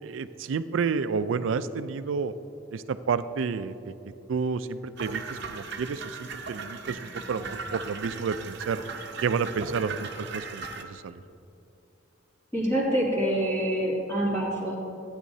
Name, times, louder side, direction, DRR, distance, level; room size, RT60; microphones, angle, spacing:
voice 1, 0.0-2.3 2.7-3.9 4.3-8.8 9.2-11.2, right 5 dB, 85° right, 13 dB, 0.4 m, -30 dB
sound 1, 5.0-10.8, right 4 dB, 60° right, 0.7 m, -38 dB
voice 2, 12.5-14.7, right 1 dB, 15° left, -7 dB, 2.6 m, -26 dB
15.0 x 9.3 x 2.7 m, 2.7 s
head